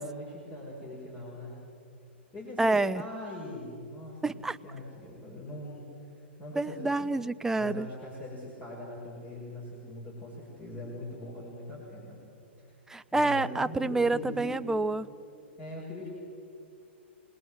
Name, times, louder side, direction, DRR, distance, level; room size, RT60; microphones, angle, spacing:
voice 1, 0.0-1.6 2.3-4.3 4.6-7.1 7.6-12.2 12.6-12.8 13.1-14.6 15.6-16.1, left 1 dB, 20° left, -4 dB, 6.2 m, -41 dB
voice 2, 2.6-3.0 4.2-4.6 6.6-7.9 12.9-15.1, right 2 dB, 5° right, 13 dB, 0.6 m, -28 dB
26.5 x 20.5 x 7.8 m, 2.6 s
hypercardioid pair, 115°, 6 cm